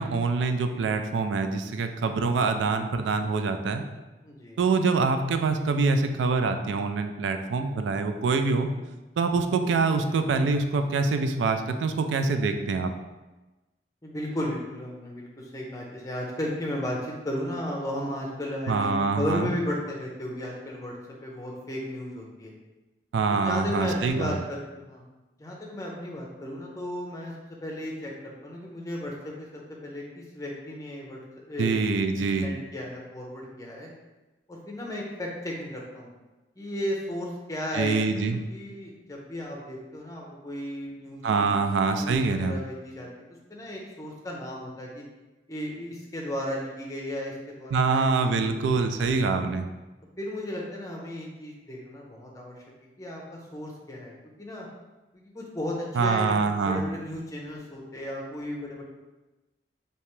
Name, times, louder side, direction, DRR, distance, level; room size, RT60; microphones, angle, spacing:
voice 1, 0.0-3.8 4.6-8.7 9.2-12.9 18.7-19.5 23.1-24.4 31.6-32.5 37.7-38.4 41.2-42.6 47.7-49.7 55.9-56.8, right 4 dB, 90° right, 7 dB, 0.3 m, -25 dB
voice 2, 4.2-4.6 14.0-22.5 23.3-25.0 25.4-27.3 27.6-29.5 29.8-31.2 31.4-33.9 34.5-36.1 36.6-38.0 38.5-41.6 41.9-43.1 43.5-45.0 45.5-48.6 50.2-52.6 53.0-54.7 55.1-58.8, left 1 dB, 20° left, -2 dB, 0.6 m, -35 dB
3.3 x 2.8 x 3.1 m, 1.1 s
head